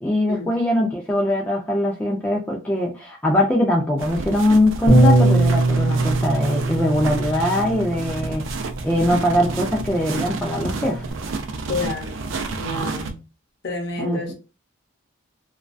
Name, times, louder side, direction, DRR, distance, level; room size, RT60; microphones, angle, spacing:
voice 1, 0.0-8.4 8.8-11.0 14.0-14.3, left 1 dB, 10° left, 0.3 m, -21 dB
sound 1, 4.0-13.1, right 3 dB, 70° right, 0.4 m, -31 dB
Bass guitar, 4.9-11.1, right 2 dB, 85° left, 0.8 m, -22 dB
voice 2, 11.7-12.2 12.5-13.1 13.6-14.3, left 3 dB, 55° left, 0.7 m, -29 dB
2.3 x 2.3 x 2.4 m
head